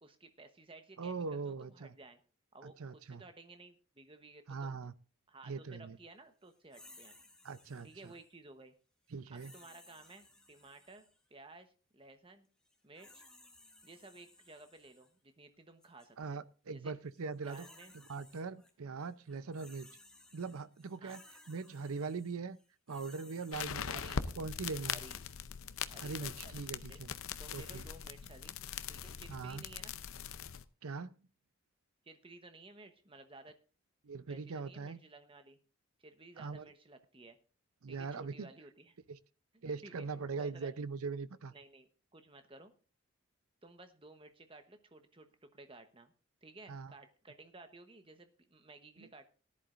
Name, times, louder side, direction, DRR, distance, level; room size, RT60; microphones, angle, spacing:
voice 1, 0.0-2.2 2.5-4.7 5.3-7.1 7.8-8.7 9.3-11.0 11.3-12.5 12.8-13.2 13.8-16.9 17.5-17.9 21.0-21.1 23.9-24.2 24.8-25.2 25.9-27.0 27.4-28.6 28.9-29.9 32.0-33.6 34.3-35.6 36.0-37.4 37.9-39.0 39.5-40.7 41.5-42.7 43.6-46.1 46.4-49.3, right 2 dB, 25° right, 8 dB, 1.0 m, -55 dB
voice 2, 1.0-1.9 2.6-3.2 4.5-4.9 5.5-6.0 7.4-7.9 9.1-9.5 16.2-17.7 18.1-19.9 20.3-21.2 21.5-22.6 22.9-24.0 24.4-25.0 26.0-27.1 27.5-27.9 29.3-29.6 30.8-31.1 34.0-35.0 36.4-36.7 37.8-38.5 39.1-39.2 39.6-41.5 46.7-46.9 49.0-49.1, right 4 dB, 85° right, 15 dB, 0.6 m, -41 dB
sound 1, 6.7-8.3 9.3-11.2 12.7-15.1 15.8-16.1 17.1-18.7 19.0-24.1, left 2 dB, 5° left, 1.1 m, -60 dB
sound 2, 23.5-30.6, left 7 dB, 75° left, 0.6 m, -41 dB
17.5 x 11.0 x 2.5 m, 0.36 s
head